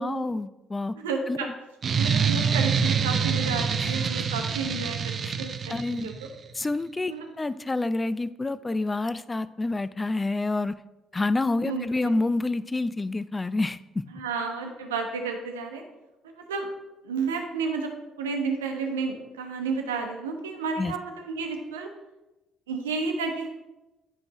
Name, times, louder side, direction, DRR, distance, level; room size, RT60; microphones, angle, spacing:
voice 1, 0.0-1.0 1.3-1.5 3.8-3.9 5.2-5.3 5.7-6.1 6.5-10.7 11.1-14.0 20.8-20.9, left 2 dB, 25° left, 15 dB, 0.4 m, -28 dB
voice 2, 0.9-1.5 1.9-6.1 7.1-7.3 11.6-12.1 14.1-15.8 16.2-16.7 17.0-21.9 22.7-23.5, right 4 dB, 85° right, 4 dB, 0.8 m, -31 dB
sound 1, 1.8-6.3, right 6 dB, 50° right, 0.5 m, -26 dB
9.4 x 5.2 x 2.9 m, 1.0 s
hypercardioid pair, 50°, 0 cm